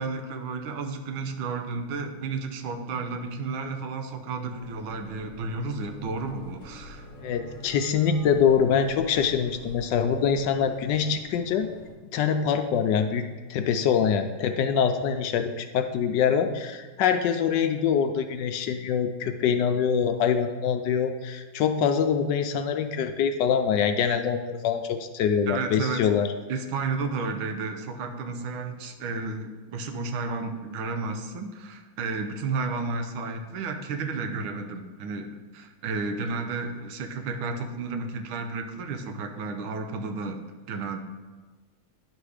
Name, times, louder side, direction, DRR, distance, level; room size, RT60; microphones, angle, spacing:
voice 1, 0.0-7.1 25.5-26.1 26.5-41.0, right 4 dB, 90° right, 5 dB, 1.6 m, -32 dB
sound 1, 4.5-11.9, equal, 35° left, 0.9 m, -46 dB
voice 2, 7.2-11.7 12.1-13.2 13.5-26.3, left 7 dB, 75° left, 7 dB, 1.1 m, -24 dB
11.0 x 4.0 x 4.9 m, 1.3 s
omnidirectional pair, 2.2 m